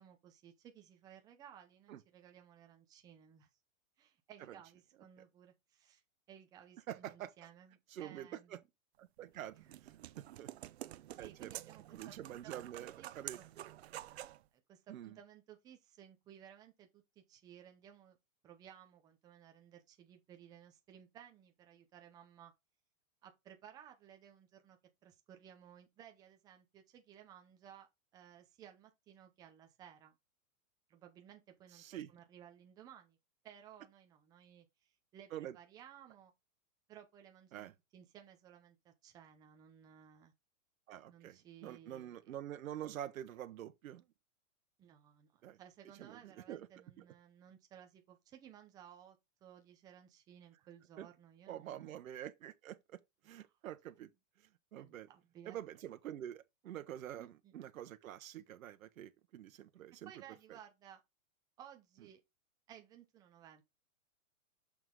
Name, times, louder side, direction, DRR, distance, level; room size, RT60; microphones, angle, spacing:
voice 1, 0.0-3.5 4.0-6.0 6.3-8.6 11.1-13.5 14.7-18.2 18.4-22.5 23.2-27.9 28.1-30.1 30.9-31.8 32.1-33.2 33.4-36.3 36.9-40.3 41.1-42.3 44.8-51.9 53.4-53.5 54.8-55.6 57.2-57.6 59.9-61.0 61.6-62.2 62.7-63.6, right 9 dB, 10° right, 0.6 m, -58 dB
voice 2, 6.9-7.3 7.9-8.6 9.0-10.5 11.2-11.5 11.9-13.4 14.9-15.2 31.7-32.1 35.3-35.6 37.5-37.7 40.9-44.0 45.4-45.6 46.0-46.7 47.0-47.1 51.0-51.1 51.5-53.0 53.2-54.1 54.4-55.1 55.5-60.1, right 11 dB, 75° right, 1.1 m, -47 dB
sound 1, 9.2-14.4, right 13 dB, 50° right, 0.7 m, -49 dB
6.4 x 5.9 x 3.8 m
supercardioid pair, 170°, 41 cm